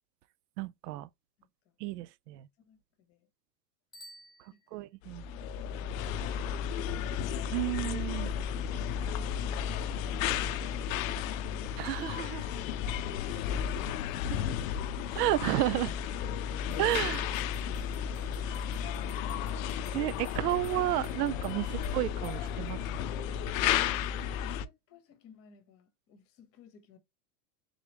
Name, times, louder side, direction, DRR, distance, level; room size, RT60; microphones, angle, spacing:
voice 1, 0.6-1.1 1.8-2.5 4.7-5.2 7.5-8.3 11.8-12.5 14.3-14.4 15.2-15.9 16.8-17.2 19.9-22.8, right 16 dB, 80° right, 0.5 m, -31 dB
voice 2, 1.4-1.8 2.6-3.3 4.5-7.2 8.3-11.7 12.7-14.1 24.4-27.0, left 6 dB, 30° left, 0.9 m, -60 dB
Bicycle bell, 3.9-5.2, right 1 dB, 5° left, 1.3 m, -53 dB
sound 1, 5.0-24.7, left 9 dB, 60° left, 0.5 m, -33 dB
sound 2, 16.7-22.8, right 3 dB, 15° right, 1.1 m, -59 dB
3.8 x 3.0 x 3.3 m
supercardioid pair, 150°, 48 cm